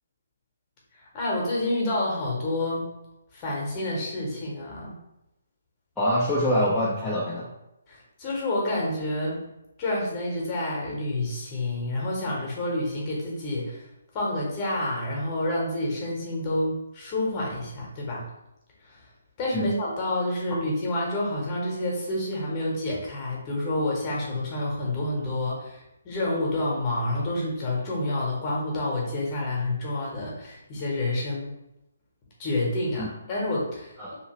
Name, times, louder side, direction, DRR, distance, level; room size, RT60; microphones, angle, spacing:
voice 1, 1.1-2.9 3.3-4.9 7.9-9.4 9.8-13.8 14.1-18.2 18.9-19.0 19.4-31.5 32.4-33.9, left 1 dB, 25° left, -3 dB, 1.0 m, -28 dB
voice 2, 6.0-7.5 19.5-19.7 33.0-33.1 34.0-34.2, equal, 5° left, -10 dB, 0.5 m, -25 dB
2.9 x 2.7 x 2.9 m, 0.87 s
figure-of-eight pair, 140°, 0 cm